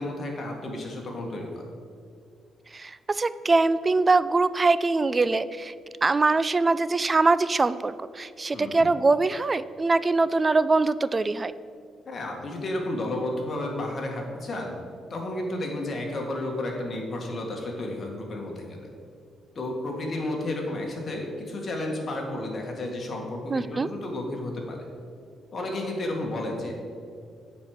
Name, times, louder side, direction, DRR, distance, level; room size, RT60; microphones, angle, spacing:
voice 1, 0.0-1.6 8.5-8.9 12.1-14.8 15.1-18.9 19.6-24.8 25.5-26.7, left 1 dB, 40° left, 0 dB, 1.7 m, -32 dB
voice 2, 2.7-5.7 6.0-11.5 23.5-23.9, right 3 dB, 25° right, 15 dB, 0.3 m, -23 dB
8.2 x 4.6 x 6.4 m, 2.3 s
cardioid pair, 90°, 0 cm